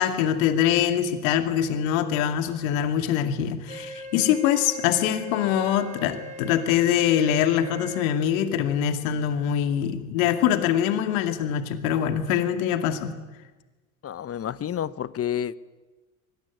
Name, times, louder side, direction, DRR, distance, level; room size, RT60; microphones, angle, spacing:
voice 1, 0.0-13.1, left 10 dB, 70° left, 8 dB, 2.4 m, -24 dB
Wind instrument woodwind instrument, 3.7-8.1, equal, 15° right, 2.9 m, -39 dB
voice 2, 14.0-15.6, left 10 dB, 35° left, 18 dB, 1.1 m, -29 dB
24.0 x 19.5 x 9.7 m, 1.2 s
hypercardioid pair, 75°, 41 cm